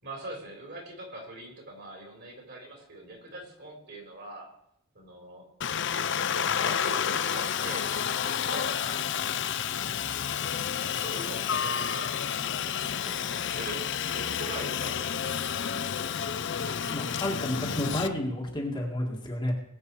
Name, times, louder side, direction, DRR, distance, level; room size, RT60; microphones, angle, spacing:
voice 1, 0.0-4.5 4.9-5.4 6.3-9.1 10.5-13.9 14.1-15.9, right 1 dB, 50° right, 1 dB, 4.3 m, -43 dB
Aircraft, 5.6-18.1, left 8 dB, 55° left, 0.6 m, -30 dB
voice 2, 16.9-19.5, left 1 dB, 20° left, -1 dB, 2.0 m, -31 dB
20.0 x 7.9 x 4.8 m, 0.75 s
head